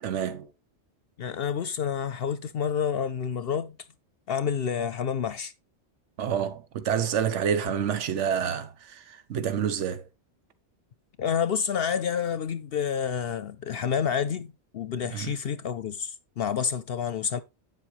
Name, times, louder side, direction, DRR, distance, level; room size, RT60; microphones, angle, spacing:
voice 1, 0.0-0.5 6.2-10.1 15.0-15.3, right 8 dB, 85° right, 1.2 m, -28 dB
voice 2, 1.2-3.8 4.3-5.5 11.2-17.4, left 7 dB, 65° left, 0.8 m, -29 dB
9.2 x 7.5 x 3.1 m
omnidirectional pair, 1.2 m